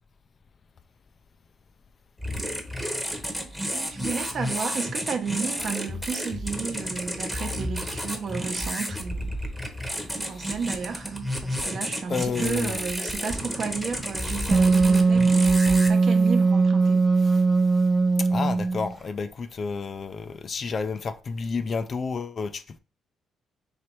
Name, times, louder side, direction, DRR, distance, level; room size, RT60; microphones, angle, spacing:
sound 1, 2.2-15.9, equal, ahead, 0.9 m, -31 dB
voice 1, 3.7-9.3 10.0-17.1, right 5 dB, 55° right, 0.8 m, -32 dB
voice 2, 12.1-12.8 17.2-17.4 18.2-22.8, left 5 dB, 45° left, 0.4 m, -30 dB
Wind instrument woodwind instrument, 14.5-18.9, right 4 dB, 25° right, 0.5 m, -20 dB
3.2 x 3.0 x 4.5 m
cardioid pair, 90°, 0 cm